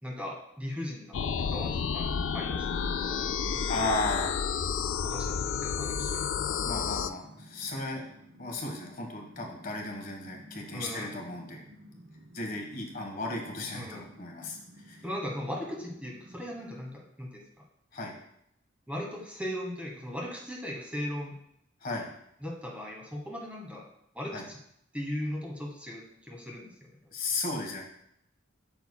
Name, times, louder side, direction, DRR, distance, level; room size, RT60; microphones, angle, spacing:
voice 1, 0.0-2.1 2.3-3.6 5.0-6.6 10.7-11.1 13.7-14.0 15.0-17.4 18.9-21.3 22.4-23.8 24.1-24.6 24.9-26.9, equal, 5° right, -1 dB, 1.3 m, -38 dB
sound 1, 1.1-7.1, left 7 dB, 75° left, 0.4 m, -31 dB
voice 2, 3.7-4.4 6.6-8.0 8.4-11.6 12.3-15.0 17.9-18.1 21.8-22.1 24.3-24.4 27.1-27.8, left 2 dB, 45° left, 1 dB, 1.4 m, -35 dB
sound 2, 4.7-16.9, equal, 75° right, 1.4 m, -54 dB
8.6 x 6.8 x 2.2 m, 0.75 s
head